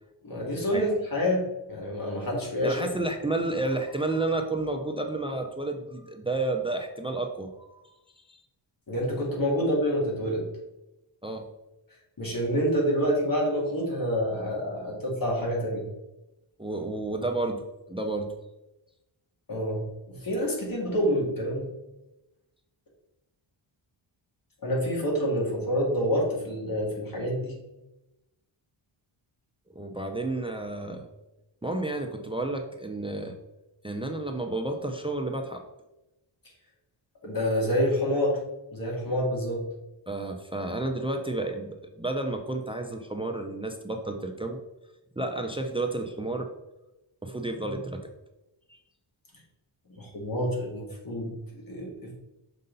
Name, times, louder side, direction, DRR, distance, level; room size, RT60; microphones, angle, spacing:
voice 1, 0.2-2.8 8.9-10.5 12.2-15.8 19.5-21.7 24.6-27.5 37.2-38.4 38.7-39.7 49.9-52.1, equal, 45° left, -1 dB, 2.2 m, -27 dB
voice 2, 2.6-7.9 8.2-8.4 11.2-11.5 16.6-18.3 29.7-31.1 31.6-33.3 33.8-35.6 40.1-44.6 45.2-46.5 47.2-48.0 48.7-48.8, right 2 dB, 10° right, 5 dB, 0.5 m, -31 dB
6.5 x 5.5 x 4.0 m, 0.97 s
wide cardioid pair, 160°, 49 cm